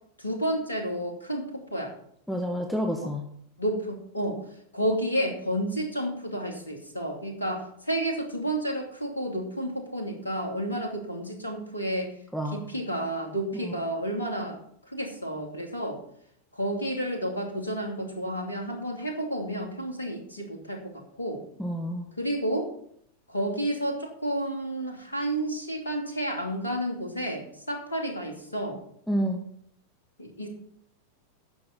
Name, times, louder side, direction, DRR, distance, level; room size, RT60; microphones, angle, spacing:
voice 1, 0.2-1.9 3.6-4.4 4.7-12.1 12.5-14.6 14.9-16.0 16.5-21.4 22.2-22.7 23.3-28.8 30.2-30.5, right 1 dB, 80° left, 2 dB, 2.6 m, -31 dB
voice 2, 2.3-3.2 12.3-12.6 13.6-13.7 21.6-22.0 29.1-29.4, equal, ahead, 2 dB, 1.3 m, -29 dB
9.7 x 6.7 x 7.0 m, 0.67 s
figure-of-eight pair, 90°, 0 cm